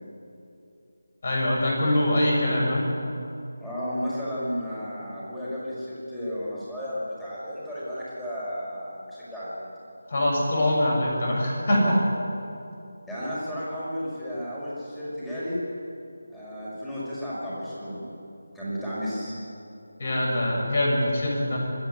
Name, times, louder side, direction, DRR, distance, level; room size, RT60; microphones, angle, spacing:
voice 1, 1.2-2.8 10.1-11.8 20.0-21.6, left 1 dB, 45° left, -1 dB, 6.8 m, -23 dB
voice 2, 3.6-9.7 11.6-12.0 13.1-15.6 16.3-18.1 18.5-19.3, equal, 5° left, -10 dB, 5.7 m, -33 dB
25.5 x 10.5 x 10.0 m, 2.7 s
figure-of-eight pair, 160°, 0 cm